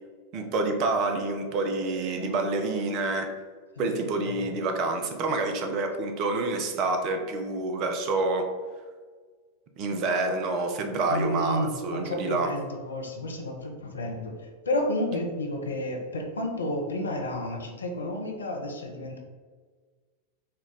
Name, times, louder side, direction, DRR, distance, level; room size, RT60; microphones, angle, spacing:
voice 1, 0.3-3.3 3.8-8.5 9.8-12.5, right 3 dB, 40° right, 5 dB, 0.5 m, -28 dB
voice 2, 4.2-4.5 11.1-19.2, left 1 dB, 70° left, 2 dB, 0.6 m, -31 dB
4.3 x 2.3 x 3.8 m, 1.5 s
figure-of-eight pair, 90°, 0 cm